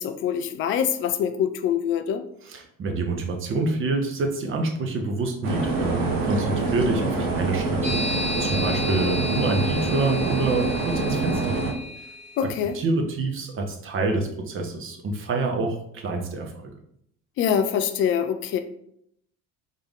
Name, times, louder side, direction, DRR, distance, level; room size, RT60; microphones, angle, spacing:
voice 1, 0.0-2.2 12.4-12.7 17.4-18.6, left 8 dB, 30° left, 8 dB, 0.4 m, -24 dB
voice 2, 2.4-11.7 12.4-12.5 12.7-16.5, right 3 dB, 30° right, 3 dB, 0.8 m, -27 dB
sound 1, 5.4-11.7, right 3 dB, 60° right, 1.0 m, -26 dB
sound 2, 7.8-12.5, left 2 dB, 85° right, 1.4 m, -33 dB
3.6 x 3.4 x 3.6 m, 0.72 s
figure-of-eight pair, 60°, 43 cm